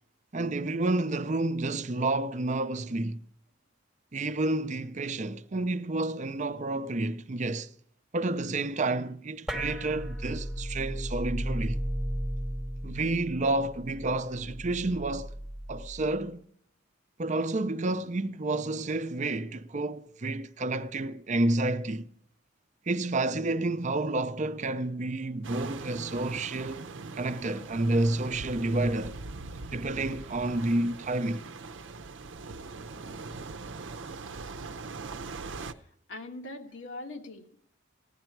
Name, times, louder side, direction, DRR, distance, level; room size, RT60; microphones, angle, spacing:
voice 1, 0.3-3.2 4.1-7.7 8.1-11.8 12.8-15.3 15.7-16.5 17.2-22.1 22.9-26.9 27.1-29.2 29.7-31.4, right 2 dB, 40° right, 0.6 m, -30 dB
sound 1, 9.5-16.2, equal, 5° right, 0.9 m, -35 dB
sound 2, 25.4-35.7, right 4 dB, 85° right, 0.7 m, -41 dB
voice 2, 35.8-37.7, left 2 dB, 80° left, 1.4 m, -42 dB
15.5 x 10.0 x 4.6 m
head